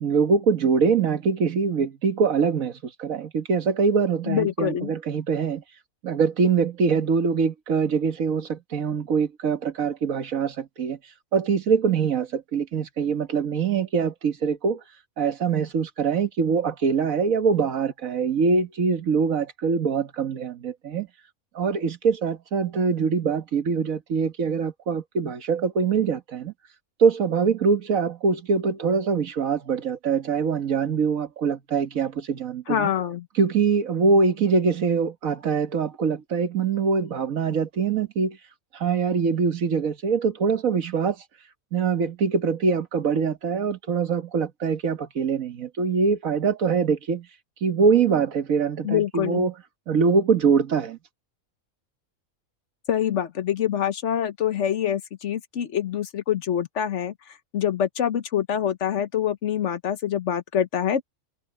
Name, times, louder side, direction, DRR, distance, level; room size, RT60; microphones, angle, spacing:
voice 1, 0.0-5.6 6.0-11.0 11.3-14.8 15.2-21.1 21.6-26.5 27.0-32.9 33.4-38.4 38.7-41.2 41.7-47.3 47.6-49.5 49.9-51.0, right 5 dB, 75° right, 1.7 m, -23 dB
voice 2, 4.3-4.9 32.7-33.3 48.8-49.4 52.9-57.1 57.5-61.0, left 9 dB, 60° left, 1.1 m, -25 dB
omnidirectional pair, 1.4 m